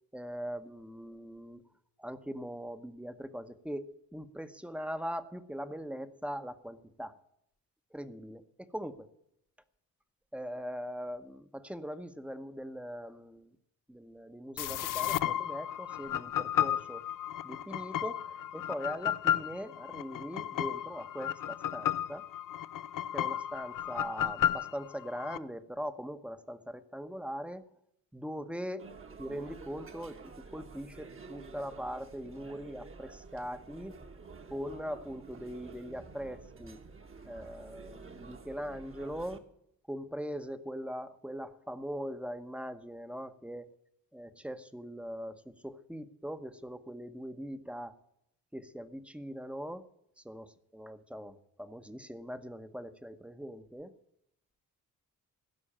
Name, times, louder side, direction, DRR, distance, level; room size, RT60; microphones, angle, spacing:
voice 1, 0.1-1.6 2.0-7.1 7.9-9.1 10.3-13.5 13.9-17.1 17.4-22.2 23.1-27.6 28.1-28.9 29.2-34.0 34.5-36.8 37.2-39.4 39.9-43.7 44.1-47.9 48.5-49.8 50.2-53.9, equal, 5° right, 10 dB, 1.0 m, -41 dB
sound 1, 14.6-25.4, left 11 dB, 65° left, 0.6 m, -33 dB
sound 2, 28.8-39.4, right 4 dB, 35° right, 1.5 m, -50 dB
16.0 x 6.3 x 8.7 m, 0.76 s
cardioid pair, 90°, 35 cm